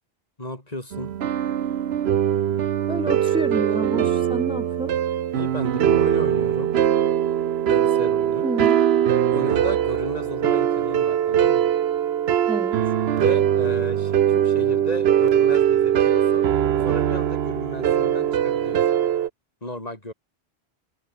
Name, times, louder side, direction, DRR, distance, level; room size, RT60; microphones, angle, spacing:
voice 1, 0.4-1.1 5.3-6.7 7.7-8.5 9.3-11.7 13.2-16.5 16.8-18.8 19.6-20.1, left 1 dB, 40° left, 4.5 m, -34 dB
sound 1, 0.9-19.3, right 10 dB, 85° right, 1.0 m, -21 dB
voice 2, 2.9-4.9 8.4-8.8 12.5-12.8, right 1 dB, 10° right, 0.4 m, -29 dB
omnidirectional pair, 1.0 m